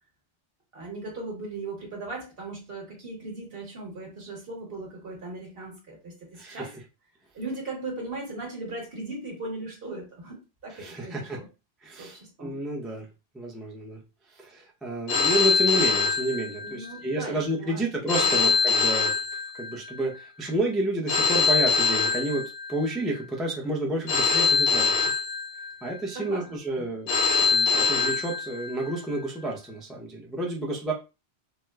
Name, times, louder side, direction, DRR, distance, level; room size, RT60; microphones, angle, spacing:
voice 1, 0.7-6.7 7.3-11.5 12.0-12.6 16.6-17.9 18.2-18.5 26.1-27.0, right 2 dB, 55° right, 0 dB, 1.3 m, -38 dB
voice 2, 6.4-6.7 10.7-11.4 11.8-13.1 13.3-14.0 14.3-19.1 19.5-25.1 25.8-27.1 27.5-30.9, right 1 dB, ahead, -1 dB, 0.4 m, -30 dB
Telephone, 15.1-16.9 18.1-19.9 21.1-22.9 24.1-25.9 27.1-28.9, left 5 dB, 60° left, 1.1 m, -24 dB
4.3 x 2.0 x 2.3 m, 0.29 s
omnidirectional pair, 1.2 m